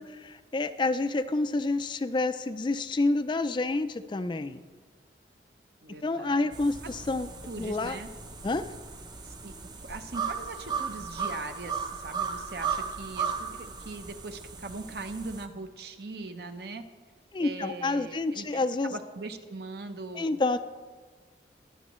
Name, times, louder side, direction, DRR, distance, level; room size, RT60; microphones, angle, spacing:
voice 1, 0.0-4.6 6.0-7.3 7.6-8.0 8.4-8.7 17.3-19.0 20.1-20.6, left 2 dB, 25° left, 11 dB, 0.3 m, -28 dB
voice 2, 5.8-6.5 6.8-6.9 7.4-8.1 9.2-9.5 9.8-16.8 17.4-20.4, right 3 dB, 60° right, 7 dB, 0.8 m, -40 dB
sound 1, 6.5-15.5, right 6 dB, 25° right, 0.6 m, -36 dB
21.0 x 8.1 x 3.1 m, 1.4 s
head